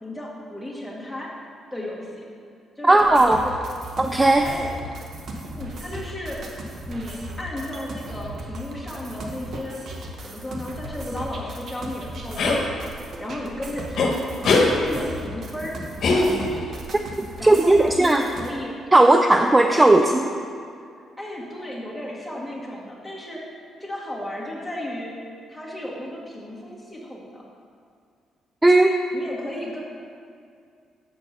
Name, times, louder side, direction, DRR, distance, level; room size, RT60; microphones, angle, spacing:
voice 1, 0.0-1.3 1.7-2.3 2.8-3.6 4.4-4.7 5.4-6.4 6.9-9.8 10.2-14.2 14.6-15.8 17.4-18.8 19.3-20.5 21.2-23.4 23.8-25.1 25.5-27.4 29.1-29.8, left 1 dB, 5° left, -5 dB, 1.8 m, -34 dB
voice 2, 2.8-3.4 4.0-4.5 17.2-18.2 18.9-20.2 28.6-28.9, right 2 dB, 15° right, 5 dB, 0.4 m, -16 dB
sound 1, 2.9-18.5, right 1 dB, 60° right, 1.0 m, -37 dB
sound 2, 12.4-12.6 14.0-14.1 14.4-14.7 16.0-16.7, left 3 dB, 65° left, 1.1 m, -20 dB
7.1 x 4.4 x 6.6 m, 2.3 s
cardioid pair, 90°, 0 cm